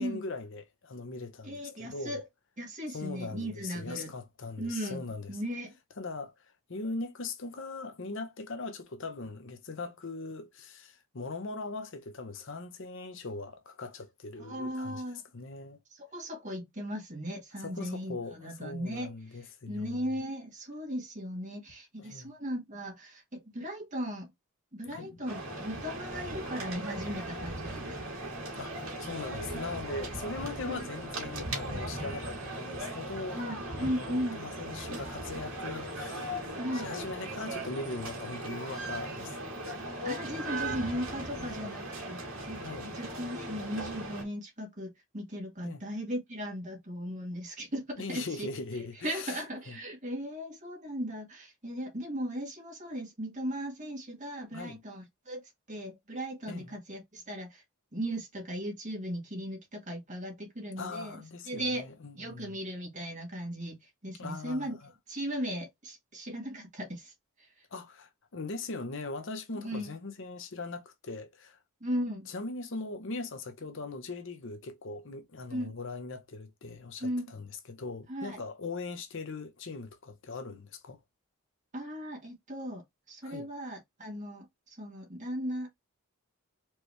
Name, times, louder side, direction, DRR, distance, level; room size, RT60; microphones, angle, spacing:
voice 1, 0.0-2.2 2.9-5.3 6.0-15.0 15.3-15.8 17.6-20.0 22.0-22.3 24.9-25.2 28.6-33.5 33.8-39.4 41.4-41.7 42.6-43.0 45.6-45.8 48.0-49.4 49.7-49.8 54.5-54.8 56.5-56.8 60.8-62.6 64.2-64.9 67.7-71.6 72.3-81.0 83.2-83.5, left 3 dB, 55° left, 0.8 m, -40 dB
voice 2, 1.4-2.2 2.6-4.2 4.6-5.0 5.3-5.8 14.4-15.2 15.9-19.1 19.7-24.3 24.7-28.0 30.6-30.9 33.3-34.4 36.6-36.9 38.9-39.0 40.0-55.4 55.7-57.6 57.9-61.9 62.1-64.8 65.1-67.5 69.5-69.9 71.8-72.3 75.5-75.7 77.0-77.3 78.1-78.4 81.7-85.7, equal, 35° right, 1.8 m, -37 dB
sound 1, 25.3-44.2, right 1 dB, 65° right, 2.1 m, -38 dB
4.5 x 2.9 x 3.2 m
head